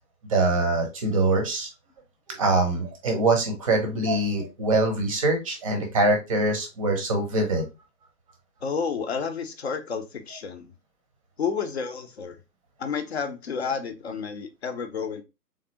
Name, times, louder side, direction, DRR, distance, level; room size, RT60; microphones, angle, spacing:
voice 1, 0.3-1.7 2.4-7.6, right 2 dB, 20° right, 0.7 m, -23 dB
voice 2, 8.6-10.7 11.4-12.4 12.8-15.2, left 6 dB, 40° left, 0.6 m, -30 dB
3.6 x 3.2 x 2.8 m
figure-of-eight pair, 130°, 50 cm